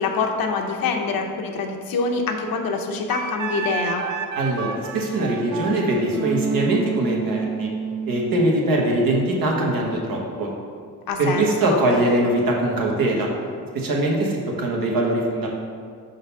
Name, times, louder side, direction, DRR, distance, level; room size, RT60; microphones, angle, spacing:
voice 1, 0.0-4.0 11.1-11.8, left 4 dB, 85° left, 3 dB, 0.8 m, -25 dB
Wind instrument woodwind instrument, 3.1-8.5, right 6 dB, 60° right, 0.6 m, -29 dB
voice 2, 4.4-7.7 8.1-10.5 11.2-13.3 13.7-15.5, right 1 dB, 90° right, -1 dB, 1.2 m, -22 dB
5.5 x 3.9 x 5.4 m, 2.1 s
cardioid pair, 110°, 34 cm